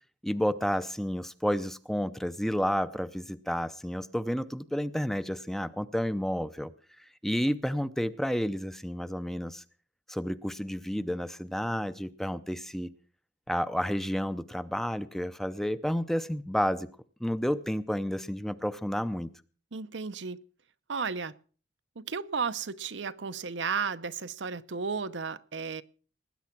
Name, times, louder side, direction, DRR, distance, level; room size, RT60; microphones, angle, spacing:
voice 1, 0.2-6.7 7.2-9.6 10.1-12.9 13.5-16.9 17.2-19.3, equal, ahead, 13 dB, 0.6 m, -31 dB
voice 2, 19.7-20.4 20.9-21.3 22.0-25.8, right 5 dB, 75° right, 12 dB, 0.8 m, -33 dB
19.5 x 9.6 x 5.9 m, 0.41 s
head